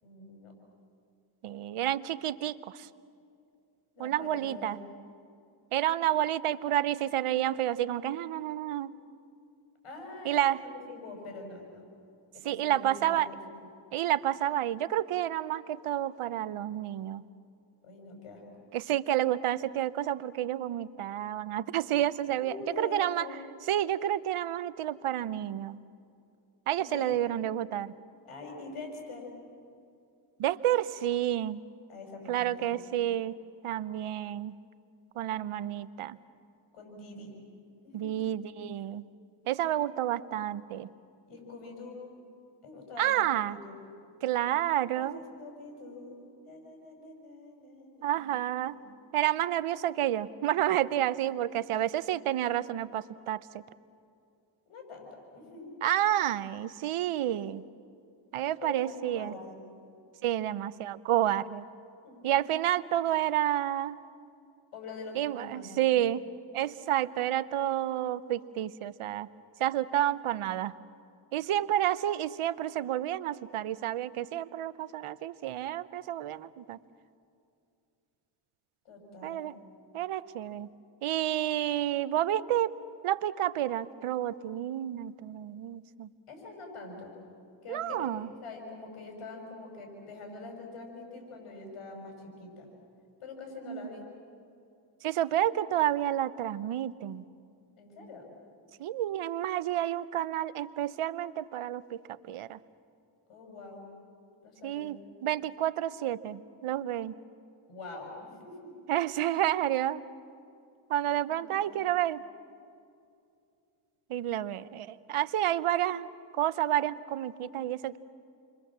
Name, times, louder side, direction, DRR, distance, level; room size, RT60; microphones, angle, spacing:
voice 1, 0.0-0.5 3.9-4.8 9.8-11.8 12.3-13.6 17.8-18.4 22.3-23.4 26.8-27.2 28.2-29.3 31.9-32.8 36.7-37.3 37.8-38.2 41.3-42.0 42.6-43.8 44.9-46.2 46.5-48.3 48.6-49.0 54.7-55.1 55.3-55.8 58.6-59.6 62.0-62.3 64.7-65.8 78.8-79.5 86.3-87.2 87.6-88.1 88.4-92.7 93.2-94.0 97.8-98.2 103.3-103.9 104.4-105.0 107.7-108.8 111.2-111.8, left 3 dB, 90° left, 2 dB, 6.2 m, -44 dB
voice 2, 1.4-2.9 4.0-4.8 5.7-8.9 10.3-10.6 12.4-13.3 13.9-17.2 18.7-23.3 23.7-25.8 26.7-27.9 30.4-31.6 32.3-33.4 33.6-34.6 35.2-36.2 37.9-39.1 39.5-40.9 43.0-43.6 44.2-45.2 48.0-48.8 49.1-53.4 55.8-57.6 58.3-59.3 60.2-61.6 62.2-64.0 65.1-66.3 66.5-69.3 69.6-70.7 71.3-76.8 79.2-79.5 79.9-80.7 81.0-82.8 83.0-86.1 87.7-88.3 93.7-93.8 95.0-97.2 98.8-102.0 102.3-102.6 104.6-107.2 108.9-110.0 110.9-112.2 114.1-116.1 116.3-118.0, right 12 dB, 80° right, 16 dB, 0.9 m, -30 dB
29.0 x 23.5 x 7.4 m, 2.5 s
supercardioid pair, 45°, 50 cm